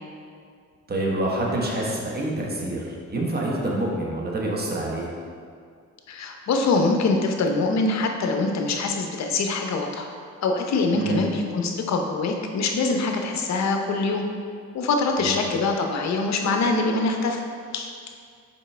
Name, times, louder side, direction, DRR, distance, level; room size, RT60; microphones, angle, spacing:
voice 1, 0.9-5.1 10.9-11.2 15.2-15.4, right 1 dB, 30° right, -2 dB, 1.3 m, -27 dB
voice 2, 6.1-10.1 10.4-14.2 14.7-17.4 17.7-17.9, left 3 dB, 65° left, 3 dB, 0.8 m, -24 dB
7.3 x 5.0 x 3.3 m, 2.2 s
cardioid pair, 90°, 30 cm